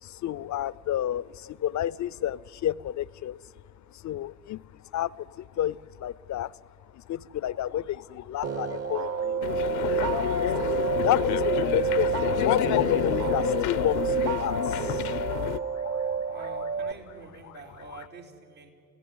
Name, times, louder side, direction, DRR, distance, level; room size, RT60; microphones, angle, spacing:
voice 1, 0.0-3.4 3.9-4.6 4.9-6.5 6.9-9.6 10.0-10.7 11.0-16.6 17.4-17.5 17.9-18.1, left 12 dB, 50° left, 23 dB, 0.5 m, -31 dB
sound 1, 8.4-16.9, right 6 dB, 40° right, 1.0 m, -29 dB
sound 2, 9.4-15.6, left 13 dB, 75° left, 0.7 m, -29 dB
voice 2, 16.2-18.7, right 4 dB, 75° right, -1 dB, 3.2 m, -46 dB
29.0 x 16.0 x 9.6 m, 2.5 s
hypercardioid pair, 50°, 39 cm